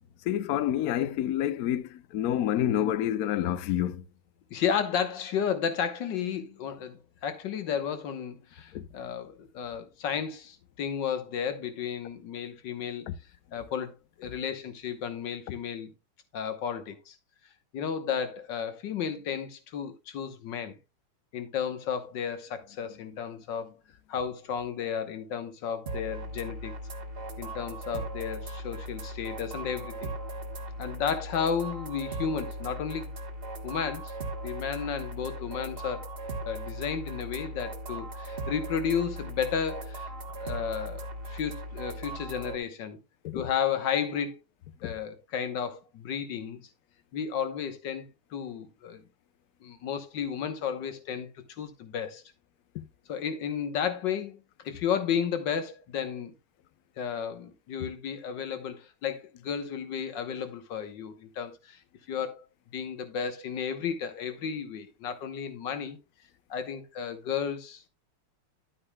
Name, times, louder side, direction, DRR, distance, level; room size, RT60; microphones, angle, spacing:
voice 1, 0.2-4.1 8.7-8.9 13.1-13.2 43.2-43.4 44.8-44.9, left 11 dB, 90° left, 0.8 m, -28 dB
voice 2, 4.5-13.0 13.5-15.9 16.3-17.1 17.7-20.8 21.3-23.7 24.1-26.8 27.4-30.1 30.8-33.1 33.6-34.1 34.4-36.1 36.4-40.1 40.4-43.0 43.3-44.4 44.8-46.7 47.1-48.1 48.3-49.0 49.6-51.3 51.6-52.2 53.1-56.3 57.0-61.8 62.1-62.4 62.7-66.0 66.5-67.9, left 7 dB, 60° left, 1.7 m, -33 dB
sound 1, 25.9-42.6, right 1 dB, 35° right, 1.0 m, -38 dB
11.0 x 8.6 x 2.2 m
omnidirectional pair, 2.3 m